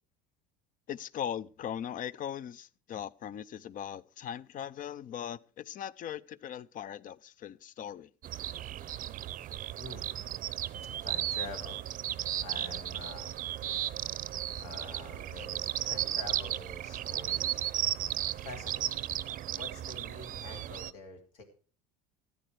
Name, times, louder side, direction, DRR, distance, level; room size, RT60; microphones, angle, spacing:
voice 1, 0.9-8.1, left 9 dB, 40° left, 0.6 m, -39 dB
sound 1, 8.2-20.9, right 12 dB, 40° right, 0.6 m, -35 dB
voice 2, 9.8-10.1 11.0-11.8 12.4-13.3 14.6-17.7 18.3-19.0 19.5-21.4, left 3 dB, 75° left, 3.0 m, -46 dB
14.0 x 9.3 x 4.8 m
hypercardioid pair, 85°, 20 cm